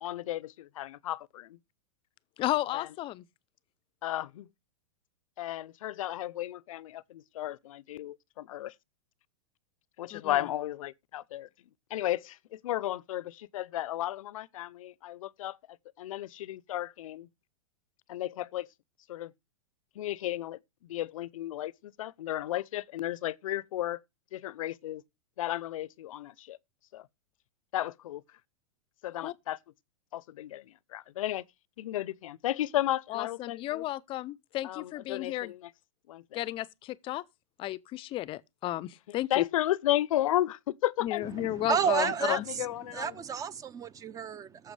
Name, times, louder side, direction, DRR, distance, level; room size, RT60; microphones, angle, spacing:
voice 1, 0.0-1.6 2.7-2.9 4.0-4.5 5.4-8.7 10.0-11.5 11.9-17.3 18.1-18.7 19.1-19.3 20.0-24.0 24.3-25.0 25.4-26.6 26.9-27.1 27.7-28.2 29.0-29.6 30.1-31.4 31.8-33.8 34.6-35.7 36.1-36.4 39.1-41.3 42.0-43.1, left 14 dB, 70° left, 0.6 m, -34 dB
voice 2, 2.4-3.2 10.1-10.4 29.2-29.3 33.1-35.5 36.3-37.2 37.6-39.4 41.0-42.4, left 15 dB, 30° left, 0.5 m, -33 dB
voice 3, 41.3-44.7, right 7 dB, 20° right, 0.5 m, -31 dB
16.5 x 7.1 x 3.3 m
hypercardioid pair, 125°, 18 cm